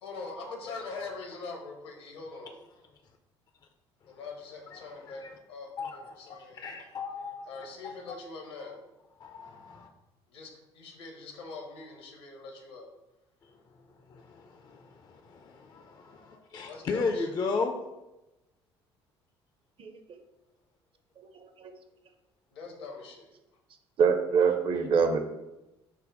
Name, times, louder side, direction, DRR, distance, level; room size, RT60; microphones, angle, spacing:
voice 1, 0.0-2.5 4.1-5.2 5.5-6.6 7.5-8.8 10.3-12.9 16.7-17.3 22.5-23.3, left 3 dB, 70° left, 2 dB, 0.8 m, -43 dB
voice 2, 0.6-1.1 4.0-4.2 4.7-5.4 5.8-8.2 9.2-9.9 13.4-17.8, left 4 dB, 30° left, 5 dB, 0.4 m, -36 dB
voice 3, 21.2-21.7 24.0-25.2, right 6 dB, 40° right, 7 dB, 0.5 m, -25 dB
5.1 x 2.1 x 3.8 m, 0.99 s
figure-of-eight pair, 55°, 14 cm